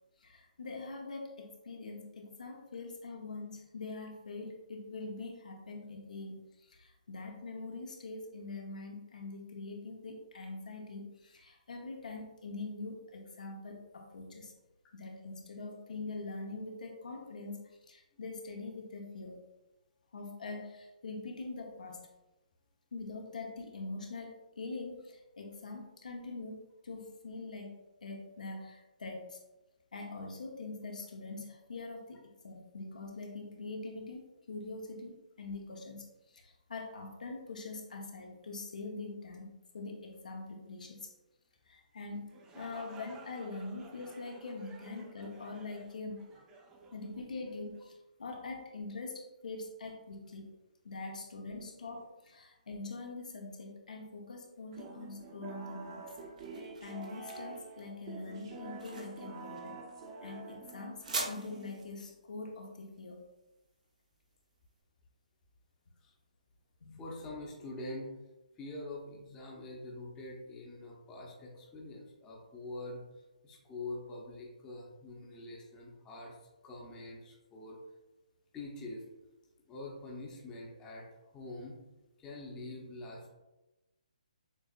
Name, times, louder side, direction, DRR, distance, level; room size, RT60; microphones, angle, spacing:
voice 1, 0.2-14.5 14.9-17.6 17.9-19.4 20.1-22.0 22.9-29.4 29.9-41.1 41.7-46.2 46.9-50.5 50.8-56.0 56.8-59.8 60.2-63.2 66.8-67.0, left 3 dB, 75° left, 1 dB, 1.0 m, -43 dB
sound 1, 42.1-47.9, right 3 dB, 15° right, 0.4 m, -55 dB
sound 2, 54.7-62.1, right 4 dB, 40° right, 0.9 m, -47 dB
sound 3, 55.5-64.6, right 3 dB, 75° right, 1.1 m, -45 dB
voice 2, 66.9-68.2 68.6-73.0 73.4-76.4 76.6-77.8 78.5-79.0 79.3-79.4 79.7-81.1 81.3-81.7 82.2-83.3, left 2 dB, 15° left, -3 dB, 0.8 m, -45 dB
6.8 x 2.8 x 2.5 m, 1.0 s
hypercardioid pair, 155°, 4 cm